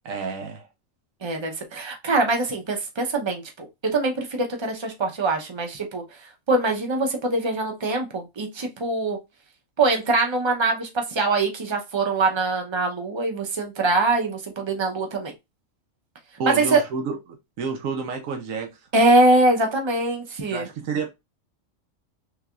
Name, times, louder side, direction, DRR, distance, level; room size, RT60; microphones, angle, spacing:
voice 1, 0.0-0.7 16.4-18.7 20.5-21.1, right 4 dB, 85° right, 1.1 m, -30 dB
voice 2, 1.2-6.0 6.5-9.2 9.8-15.3 16.4-16.8 18.9-20.7, right 2 dB, 30° right, 0.6 m, -23 dB
3.3 x 3.3 x 2.4 m
omnidirectional pair, 1.4 m